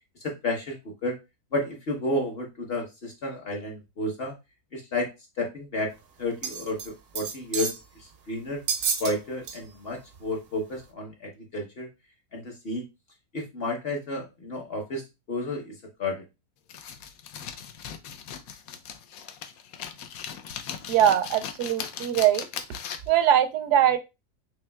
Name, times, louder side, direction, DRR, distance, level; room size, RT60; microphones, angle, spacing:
voice 1, 0.2-0.8 1.0-1.2 1.5-4.3 4.7-5.1 5.4-5.9 6.2-7.7 8.0-8.6 9.0-11.9 12.3-12.8 13.3-16.2, left 1 dB, 45° left, 1 dB, 0.9 m, -31 dB
sound 1, 6.4-6.9 7.2-7.8 8.7-9.1 9.5-9.6 10.1-10.2, right 6 dB, 65° right, 0.6 m, -30 dB
sound 2, 16.7-23.2, left 8 dB, 70° left, 1.0 m, -38 dB
voice 2, 20.9-22.5 23.1-24.0, right 10 dB, 85° right, 9 dB, 1.2 m, -21 dB
6.1 x 2.8 x 2.2 m, 0.24 s
omnidirectional pair, 1.7 m